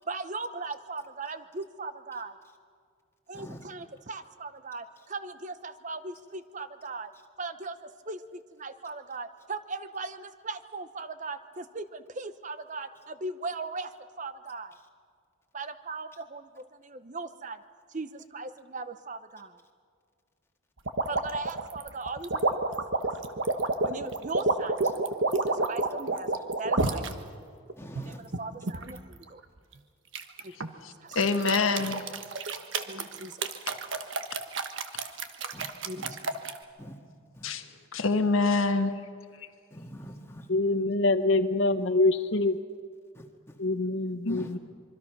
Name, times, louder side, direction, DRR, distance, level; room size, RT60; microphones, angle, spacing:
voice 1, 0.1-2.4 3.3-7.1 7.4-14.8 15.5-17.6 17.9-19.6 21.1-22.8 23.8-24.8 25.3-27.1 28.0-29.4 30.4-30.6 31.0-31.2 32.9-33.4 35.8-36.0, right 3 dB, 35° right, 0.8 m, -38 dB
voice 2, 3.3-3.6 27.8-28.2 31.8-32.0 35.5-35.7 35.9-36.1 36.8-37.0 37.3-37.5 39.7-40.5 43.1-43.6 44.3-44.5, equal, 10° left, 1.8 m, -45 dB
sound 1, 20.9-27.1 27.7-29.0 30.1-30.7 31.1-36.6, right 3 dB, 65° right, 1.4 m, -29 dB
voice 3, 30.8-32.0 37.4-37.7 37.9-38.9 39.4-39.5 44.2-44.5, left 3 dB, 80° left, 1.5 m, -26 dB
voice 4, 40.5-42.6 43.6-44.6, left 2 dB, 65° left, 0.9 m, -25 dB
25.5 x 23.5 x 6.1 m
head